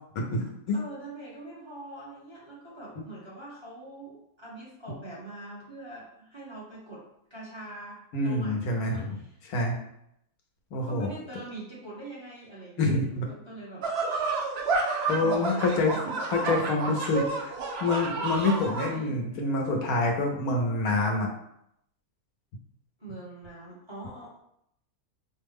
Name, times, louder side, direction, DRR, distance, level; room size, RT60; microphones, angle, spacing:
voice 1, 0.1-0.8 3.0-3.1 8.1-9.2 9.5-9.8 10.7-11.1 12.8-13.3 15.1-15.9 16.3-21.3, left 2 dB, 80° left, 1 dB, 1.2 m, -27 dB
voice 2, 0.7-7.0 7.3-8.7 9.0-9.4 10.9-13.9 14.8-16.2 18.4-19.2 23.0-24.4, right 2 dB, 20° right, -7 dB, 1.1 m, -43 dB
sound 1, 13.8-18.9, right 3 dB, 60° right, 0.7 m, -30 dB
4.9 x 2.2 x 3.5 m, 0.76 s
omnidirectional pair, 1.5 m